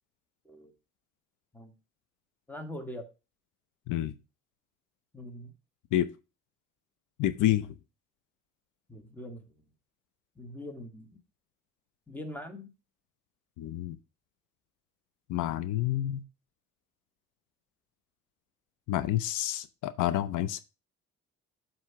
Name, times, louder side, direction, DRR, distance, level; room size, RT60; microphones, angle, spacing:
voice 1, 2.5-3.1 5.1-5.5 8.9-9.6 10.3-11.2 12.1-12.7, left 1 dB, 5° left, 5 dB, 1.5 m, -42 dB
voice 2, 3.9-4.2 5.9-6.1 7.2-7.8 13.6-14.0 15.3-16.2 18.9-20.6, left 13 dB, 85° left, 13 dB, 0.6 m, -29 dB
7.6 x 3.1 x 5.7 m, 0.29 s
cardioid pair, 90°, 30 cm